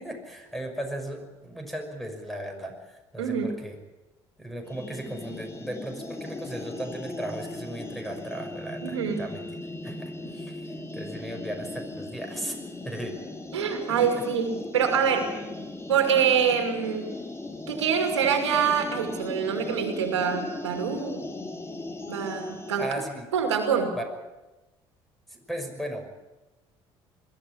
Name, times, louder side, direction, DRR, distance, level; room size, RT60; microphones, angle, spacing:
voice 1, 0.0-3.8 4.4-9.4 9.8-13.2 13.9-14.2 22.8-23.3 23.9-24.1 25.3-26.1, right 1 dB, ahead, 5 dB, 5.9 m, -36 dB
voice 2, 3.2-3.5 8.8-9.2 13.5-15.3 15.9-17.1 17.7-21.3 22.1-22.9 23.3-23.9, right 7 dB, 85° right, 5 dB, 2.3 m, -25 dB
sound 1, 4.7-22.9, left 2 dB, 20° left, 2.6 m, -38 dB
21.5 x 13.5 x 9.8 m, 1.1 s
hypercardioid pair, 55°, 15 cm